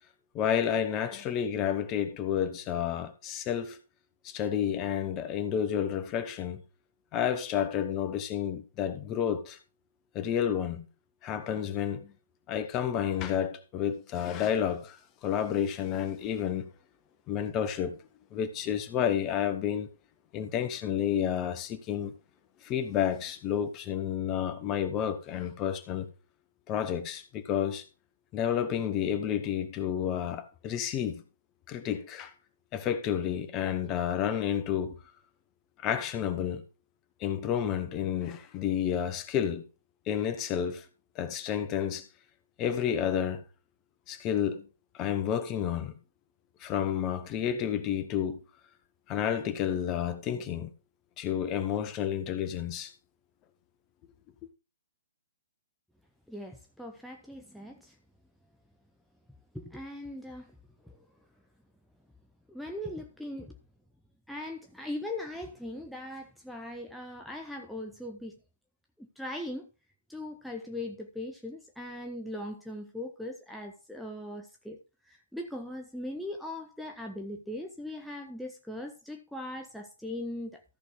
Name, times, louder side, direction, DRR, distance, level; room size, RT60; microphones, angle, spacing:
voice 1, 0.3-3.8 4.2-6.6 7.1-9.6 10.1-10.9 11.2-12.1 12.5-15.0 15.2-16.7 17.3-18.0 18.3-19.9 20.3-22.1 22.6-26.1 26.7-27.8 28.3-31.2 31.7-32.3 32.7-35.0 35.8-36.6 37.2-39.6 40.1-40.8 41.1-42.1 42.6-43.4 44.1-44.6 44.9-46.0 46.6-48.4 49.1-50.7 51.2-52.9, left 9 dB, 30° left, 1.2 m, -30 dB
voice 2, 56.3-58.0 59.5-60.5 60.8-61.0 62.5-63.6 64.3-68.4 69.0-69.7 70.1-74.8 75.0-80.6, left 1 dB, ahead, 0.8 m, -40 dB
14.0 x 6.0 x 3.7 m
figure-of-eight pair, 125°, 0 cm